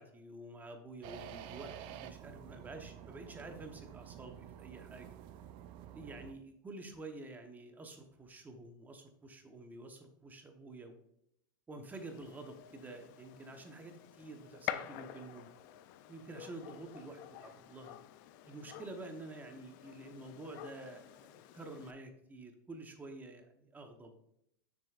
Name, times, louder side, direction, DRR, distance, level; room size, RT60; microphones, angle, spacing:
voice 1, 0.0-5.1 5.9-10.9 11.7-15.5 16.1-18.0 18.4-24.2, right 2 dB, 15° right, 5 dB, 0.9 m, -49 dB
sound 1, 1.0-6.3, right 10 dB, 45° right, 0.5 m, -50 dB
Gunshot gunfire, 11.9-21.9, left 12 dB, 55° left, 0.5 m, -48 dB
6.7 x 6.4 x 2.4 m, 0.75 s
supercardioid pair, 120°, 12 cm